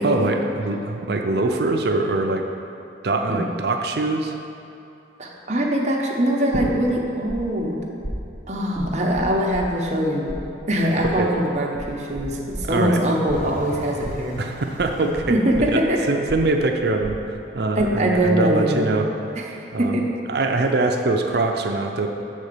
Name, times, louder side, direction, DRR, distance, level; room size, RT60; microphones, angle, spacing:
voice 1, 0.0-2.4 3.0-4.3 11.0-11.3 12.6-13.0 14.4-15.4 15.7-15.8 16.1-17.2 17.5-19.1 19.7-20.0 20.3-22.1, right 3 dB, 55° right, 4 dB, 0.5 m, -23 dB
voice 2, 5.2-7.8 8.5-10.3 10.7-14.4 15.3-16.0 17.8-19.0 19.3-19.5 19.8-20.0, equal, 35° right, -1 dB, 0.8 m, -22 dB
sound 1, 6.5-7.4 7.6-10.0 10.3-17.9 18.2-18.7, equal, 20° left, 1.2 m, -34 dB
sound 2, 13.3-18.3 18.8-18.9, left 1 dB, 45° left, 1.3 m, -42 dB
6.8 x 4.2 x 6.6 m, 2.8 s
head